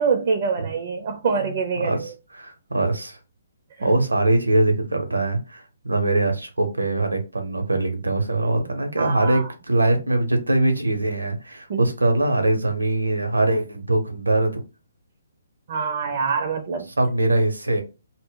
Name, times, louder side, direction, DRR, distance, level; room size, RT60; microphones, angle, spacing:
voice 1, 0.0-2.1 3.8-3.9 9.0-9.5 11.7-11.9 15.7-16.9, right 5 dB, 45° right, 0.4 m, -25 dB
voice 2, 2.3-3.2 3.8-14.6 17.0-17.8, right 2 dB, 80° right, 0.6 m, -22 dB
2.1 x 2.0 x 3.7 m
figure-of-eight pair, 130°, 0 cm